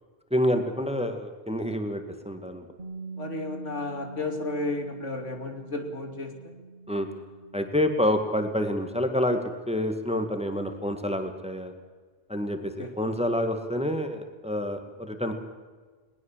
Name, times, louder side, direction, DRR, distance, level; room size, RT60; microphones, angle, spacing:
voice 1, 0.3-2.7 6.9-7.1 7.5-9.4 9.7-11.7 12.3-15.3, left 1 dB, 5° right, 6 dB, 2.0 m, -28 dB
Bass guitar, 2.8-9.0, right 3 dB, 50° right, 1.6 m, -44 dB
voice 2, 3.2-6.3 12.8-12.9, left 2 dB, 80° left, 4 dB, 3.2 m, -33 dB
20.5 x 20.0 x 7.5 m, 1.4 s
omnidirectional pair, 1.2 m